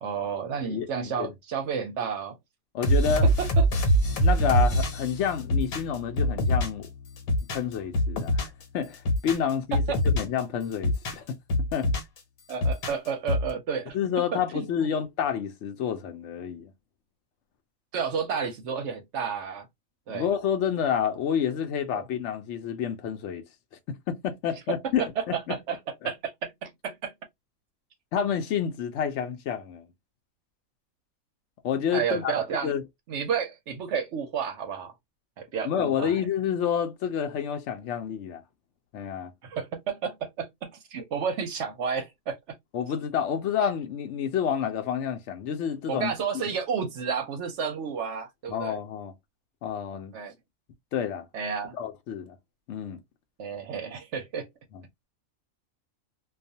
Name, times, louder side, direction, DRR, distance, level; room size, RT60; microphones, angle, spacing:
voice 1, 0.0-2.4 3.4-3.9 9.7-10.0 12.5-14.0 14.3-14.9 17.9-19.7 20.1-20.3 21.9-22.0 24.7-27.1 31.9-32.7 33.1-34.9 35.4-36.2 39.4-42.4 45.9-48.8 50.1-50.3 51.3-51.8 53.4-54.5, right 6 dB, 65° right, 0.8 m, -31 dB
voice 2, 2.7-3.3 4.2-6.9 7.5-11.4 11.7-11.9 13.9-16.7 20.1-23.4 23.9-25.6 28.1-29.9 31.6-32.3 32.6-32.8 35.6-38.4 38.9-39.3 42.7-46.1 48.5-49.1 49.6-50.1 50.9-51.2 51.7-52.4 52.7-53.0, left 8 dB, 65° left, 0.8 m, -29 dB
sound 1, 2.8-6.9 7.2-8.6 8.9-10.4 10.7-12.2 12.5-13.5, equal, 90° left, 1.2 m, -24 dB
2.4 x 2.3 x 2.6 m
omnidirectional pair, 1.5 m